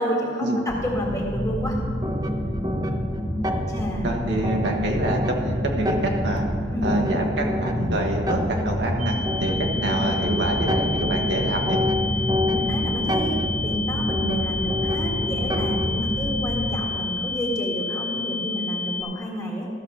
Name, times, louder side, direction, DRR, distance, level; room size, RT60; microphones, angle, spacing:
voice 1, 0.0-1.8 3.7-4.1 6.7-7.0 12.5-19.7, equal, 20° left, -2 dB, 1.8 m, -29 dB
sound 1, 0.7-16.8, equal, 50° left, 2.0 m, -28 dB
sound 2, 2.0-16.2, left 1 dB, 20° right, 0.6 m, -30 dB
voice 2, 4.0-6.4 6.8-11.8, right 1 dB, 70° right, 0 dB, 1.4 m, -26 dB
sound 3, 9.0-19.0, left 3 dB, 50° right, 1.9 m, -30 dB
13.5 x 6.9 x 5.7 m, 2.1 s
head